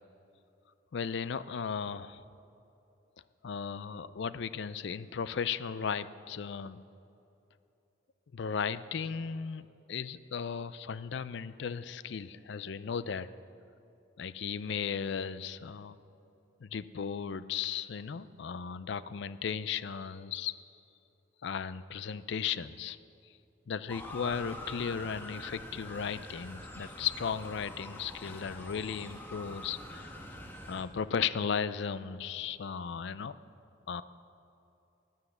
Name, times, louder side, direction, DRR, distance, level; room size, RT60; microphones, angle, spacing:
voice 1, 0.9-2.2 3.4-6.8 8.3-13.3 14.2-16.0 16.6-20.6 21.4-23.0 23.7-30.2 30.7-33.4 33.9-34.0, left 6 dB, 60° left, 15 dB, 0.4 m, -36 dB
Motor vehicle (road) / Siren, 23.9-30.8, left 1 dB, 10° left, 1.1 m, -45 dB
13.0 x 9.5 x 7.9 m, 2.8 s
head